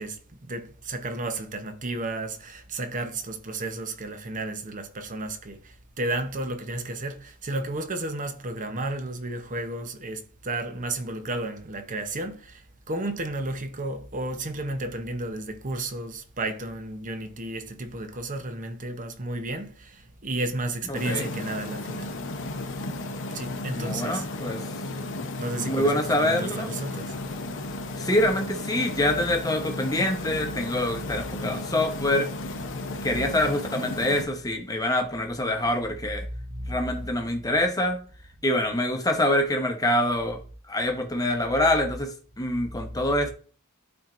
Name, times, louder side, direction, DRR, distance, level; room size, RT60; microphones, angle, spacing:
voice 1, 0.0-22.1 23.3-24.3 24.9-25.0 25.4-27.2 34.2-34.3 36.3-37.2, right 2 dB, 35° right, 0.8 m, -33 dB
voice 2, 20.9-21.3 23.7-24.7 25.7-26.7 28.0-32.3 33.0-36.2 36.7-38.0 38.4-40.4 40.7-43.3, left 1 dB, 15° left, 1.0 m, -25 dB
sound 1, 21.0-34.2, left 2 dB, 55° left, 0.8 m, -34 dB
12.0 x 4.4 x 2.6 m
head